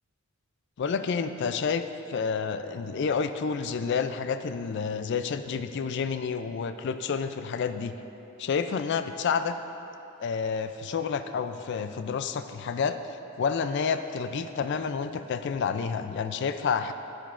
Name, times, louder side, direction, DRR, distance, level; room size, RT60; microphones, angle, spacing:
voice 1, 0.8-7.9 8.4-9.6 10.2-13.0 13.4-16.9, left 6 dB, 55° left, 10 dB, 0.3 m, -29 dB
10.0 x 9.1 x 2.5 m, 3.0 s
head